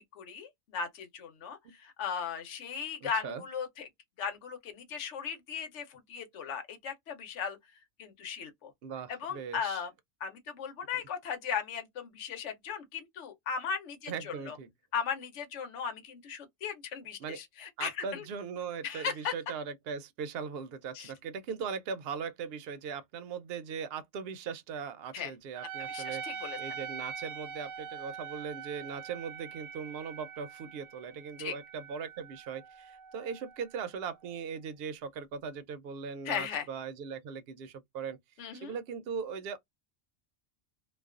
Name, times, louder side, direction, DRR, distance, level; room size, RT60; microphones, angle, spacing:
voice 1, 0.0-3.9 4.2-7.6 8.0-8.7 9.1-9.9 10.2-14.6 14.9-18.2 18.8-19.3 20.9-21.1 25.1-25.3 25.9-26.6 31.4-31.5 36.2-36.7 38.4-38.7, left 6 dB, 80° left, 1.0 m, -37 dB
voice 2, 3.0-3.4 8.8-9.8 14.1-14.7 17.2-17.4 17.8-38.2 38.5-39.6, right 6 dB, 65° right, 0.7 m, -39 dB
Wind instrument woodwind instrument, 25.5-34.5, right 7 dB, 90° right, 0.9 m, -44 dB
2.3 x 2.3 x 2.3 m
omnidirectional pair, 1.2 m